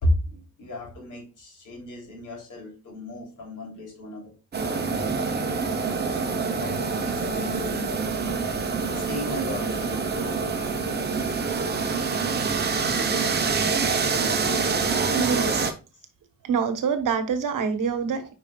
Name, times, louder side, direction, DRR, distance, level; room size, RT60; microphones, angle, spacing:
voice 1, 0.0-5.7 6.5-8.1 8.8-10.1, left 1 dB, 65° left, 3.4 m, -33 dB
sound 1, 4.5-15.7, right 4 dB, 30° right, 0.9 m, -26 dB
voice 2, 15.0-15.7 16.4-18.3, right 6 dB, 70° right, 1.3 m, -26 dB
8.7 x 5.2 x 2.4 m
wide cardioid pair, 180°, 34 cm